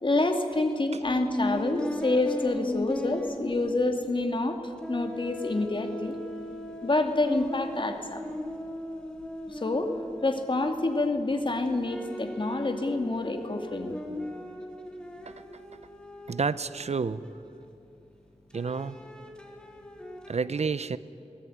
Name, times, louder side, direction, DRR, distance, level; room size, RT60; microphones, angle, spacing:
voice 1, 0.0-6.2 6.8-8.2 9.5-9.9 10.2-14.0, left 2 dB, 45° left, 5 dB, 2.5 m, -27 dB
sound 1, 1.0-4.5 4.8-11.2 11.7-17.9 18.5-20.5, left 1 dB, 5° left, 3.4 m, -38 dB
voice 2, 16.3-17.2 18.5-19.0 20.3-21.0, right 5 dB, 65° right, 16 dB, 0.7 m, -29 dB
23.5 x 18.5 x 9.4 m, 2.8 s
wide cardioid pair, 85°, 12 cm